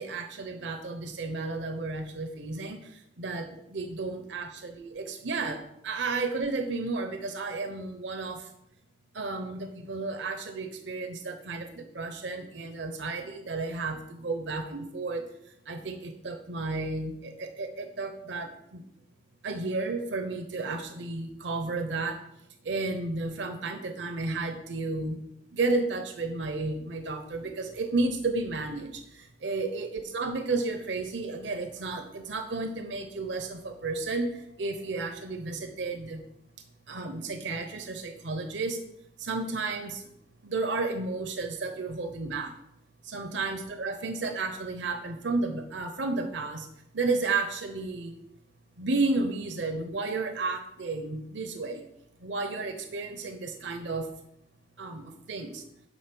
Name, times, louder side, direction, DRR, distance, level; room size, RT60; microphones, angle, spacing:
voice 1, 0.0-8.5 9.1-15.2 15.7-18.8 19.4-22.2 22.6-25.2 25.5-29.0 29.4-36.2 36.9-38.8 39.2-40.0 40.4-42.5 43.0-46.7 46.9-48.1 48.8-51.8 52.2-54.1 54.8-55.6, right 3 dB, 75° right, 6 dB, 0.9 m, -32 dB
10.0 x 4.1 x 6.9 m, 0.81 s
head